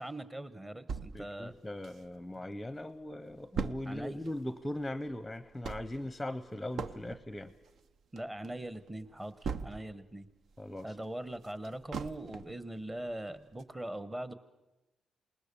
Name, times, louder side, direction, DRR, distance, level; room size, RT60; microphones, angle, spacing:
voice 1, 0.0-1.5 3.8-4.2 8.1-9.3 9.6-10.3 10.8-14.3, right 1 dB, 15° right, 14 dB, 1.2 m, -41 dB
sound 1, 0.9-2.4 2.8-2.9 3.1-10.1 10.5-12.6 13.1-13.2 13.6-13.7, right 5 dB, 65° right, 0.8 m, -41 dB
voice 2, 1.1-7.5 10.6-11.0, left 1 dB, 10° left, 14 dB, 0.8 m, -39 dB
27.0 x 20.0 x 7.0 m, 1.0 s
cardioid pair, 115°, 0 cm